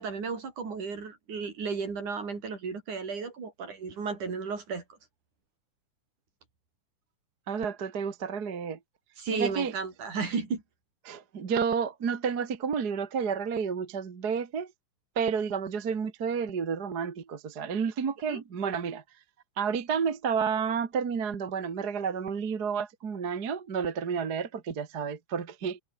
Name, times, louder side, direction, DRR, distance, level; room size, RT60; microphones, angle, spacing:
voice 1, 0.0-4.8 9.2-10.6 18.3-18.4, right 5 dB, 65° right, 6.1 m, -33 dB
voice 2, 7.5-8.8 9.3-9.7 11.0-14.7 15.2-19.0 19.6-25.8, right 6 dB, 35° right, 2.0 m, -30 dB
omnidirectional pair, 3.8 m